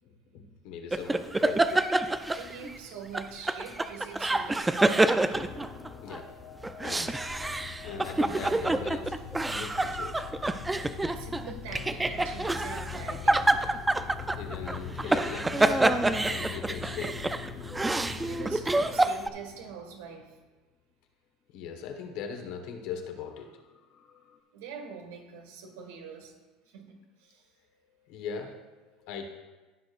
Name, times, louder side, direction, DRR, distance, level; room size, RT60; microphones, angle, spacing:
voice 1, 0.0-1.7 6.0-6.3 6.8-7.1 7.8-9.2 9.5-10.2 14.4-16.0 16.3-17.3 21.5-23.5 28.0-29.3, left 6 dB, 70° left, 4 dB, 1.4 m, -40 dB
sound 1, 0.9-2.8 3.1-6.2 6.6-19.3, right 2 dB, 10° right, 0.5 m, -27 dB
voice 2, 2.3-4.9 9.1-9.2 10.7-13.5 17.9-20.4 24.5-26.3 26.7-27.5, right 5 dB, 85° right, 2 dB, 1.9 m, -44 dB
sound 2, 5.3-20.2 23.4-23.5 23.8-24.3, left 7 dB, 45° left, 0.9 m, -42 dB
15.0 x 6.4 x 2.6 m, 1.2 s
supercardioid pair, 100°, 0 cm